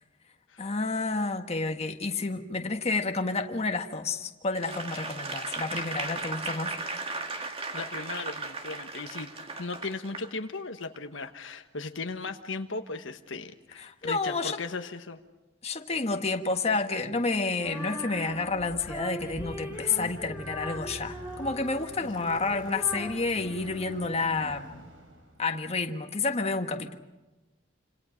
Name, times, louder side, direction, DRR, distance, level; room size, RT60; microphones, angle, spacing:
voice 1, 0.6-6.7 13.8-14.6 15.6-24.7 25.4-27.0, left 3 dB, 35° left, 5 dB, 1.5 m, -30 dB
Applause / Crowd, 4.5-10.3 10.8-10.9, right 3 dB, 30° right, 2.0 m, -36 dB
voice 2, 7.7-9.3 9.6-15.2 19.7-20.1, left 3 dB, 70° left, 7 dB, 1.3 m, -37 dB
Female singing, 17.5-24.6, equal, 10° right, 4.7 m, -41 dB
Bicycle, 17.9-25.4, right 1 dB, 80° right, 4.9 m, -48 dB
28.5 x 27.0 x 5.2 m, 1.1 s
head